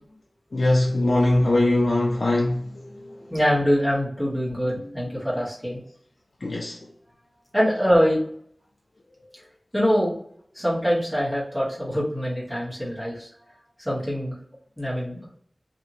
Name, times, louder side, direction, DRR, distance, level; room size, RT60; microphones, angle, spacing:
voice 1, 0.5-3.3 6.4-6.8, left 1 dB, 75° left, 0.4 m, -22 dB
voice 2, 3.3-5.8 7.5-8.2 9.7-10.1 10.5-13.3 13.8-14.3 14.8-15.2, equal, ahead, 1.2 m, -24 dB
2.9 x 2.6 x 2.5 m
wide cardioid pair, 60°, 0 cm